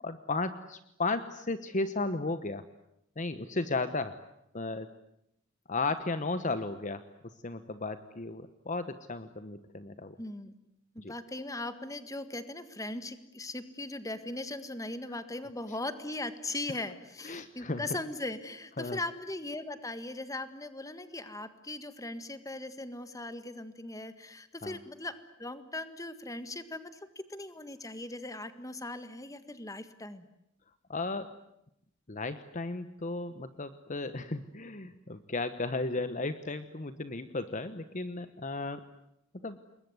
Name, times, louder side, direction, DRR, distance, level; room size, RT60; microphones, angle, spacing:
voice 1, 0.0-2.6 3.2-4.2 4.5-4.9 5.7-7.1 7.4-10.2 11.0-11.1 17.2-17.9 18.8-19.0 24.6-24.8 30.9-31.3 32.1-38.8 39.4-39.6, left 3 dB, 35° left, 11 dB, 1.1 m, -34 dB
voice 2, 10.2-10.5 10.9-30.2, left 2 dB, 15° left, 11 dB, 1.7 m, -39 dB
28.0 x 21.5 x 9.5 m, 0.81 s
head